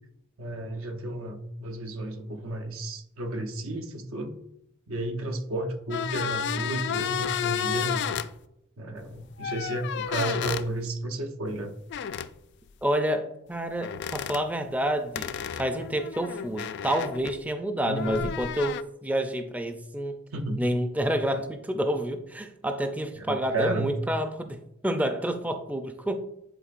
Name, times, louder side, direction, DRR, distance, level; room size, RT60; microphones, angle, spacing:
voice 1, 0.4-4.4 4.9-8.0 8.8-11.7 17.8-18.4 20.3-20.7 23.2-23.9, right 1 dB, 85° right, 5 dB, 0.9 m, -32 dB
sound 1, 5.9-8.3 9.4-10.7 11.9-12.3 13.8-14.4 15.2-17.4 18.0-18.8, left 8 dB, 55° left, 0.3 m, -32 dB
voice 2, 12.8-15.3 15.6-20.2 20.6-26.2, right 1 dB, 10° right, 7 dB, 0.4 m, -29 dB
10.0 x 4.2 x 2.5 m, 0.83 s
head